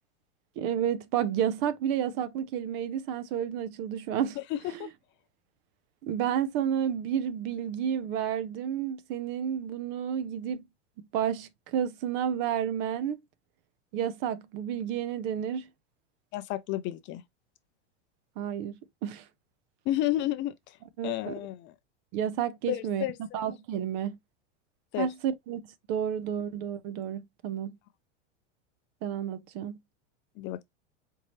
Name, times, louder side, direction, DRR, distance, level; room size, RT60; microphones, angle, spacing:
voice 1, 0.6-4.4 4.7-4.9 6.0-10.6 11.0-13.2 13.9-15.7 18.4-18.7 19.0-19.2 21.0-21.4 22.1-23.1 23.3-24.2 25.0-25.6 25.9-27.7 29.0-29.8, right 9 dB, 50° right, 0.7 m, -31 dB
voice 2, 4.5-4.9 16.3-17.2 19.9-20.8 21.0-21.7 22.7-23.4 24.9-25.1 30.4-30.6, left 14 dB, 35° left, 0.4 m, -31 dB
4.5 x 2.7 x 3.1 m
hypercardioid pair, 115°, 35 cm